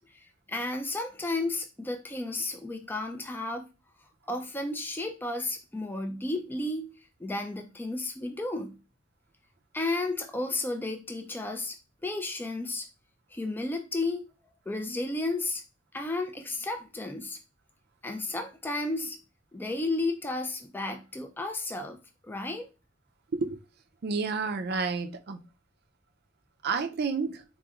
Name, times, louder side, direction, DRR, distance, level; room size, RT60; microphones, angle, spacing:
voice 1, 0.1-3.7 4.3-6.9 7.2-8.8 9.7-11.8 12.0-12.9 13.3-14.2 14.7-15.6 15.9-17.4 18.0-19.2 19.5-22.0 22.2-22.7, left 2 dB, 10° left, 0.3 m, -33 dB
voice 2, 24.0-25.4 26.6-27.4, right 4 dB, 50° right, 0.4 m, -30 dB
4.2 x 2.9 x 2.4 m
head